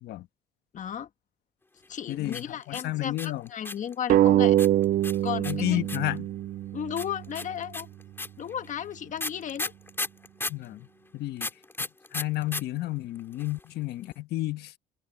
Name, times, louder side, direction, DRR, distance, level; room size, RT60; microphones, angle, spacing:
voice 1, 0.7-1.1 1.9-4.6 5.2-5.8 6.7-7.9 8.4-9.7, left 9 dB, 50° left, 1.4 m, -34 dB
voice 2, 2.1-3.5 5.4-6.3 10.5-10.9 11.1-11.5 12.1-14.8, left 16 dB, 75° left, 1.4 m, -31 dB
sound 1, 2.3-3.9 4.6-6.2 7.0-10.7 11.4-12.6 12.9-13.0 13.2-13.6, left 2 dB, 15° left, 3.2 m, -34 dB
sound 2, 4.1-7.3, right 13 dB, 55° right, 0.4 m, -24 dB
cardioid pair, 110°, 17 cm